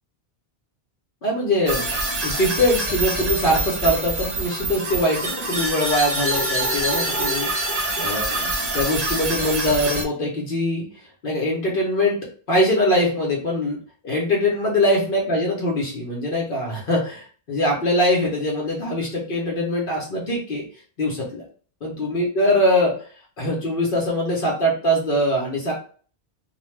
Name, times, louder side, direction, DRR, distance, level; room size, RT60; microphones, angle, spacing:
voice 1, 1.2-1.9 2.2-10.9 11.2-12.2 12.5-13.8 14.0-20.6 21.0-21.4 21.8-23.0 23.4-25.7, left 1 dB, 60° left, -2 dB, 0.9 m, -22 dB
sound 1, 1.7-10.0, right 2 dB, 40° right, 0.8 m, -25 dB
2.4 x 2.2 x 3.1 m, 0.44 s
omnidirectional pair, 1.1 m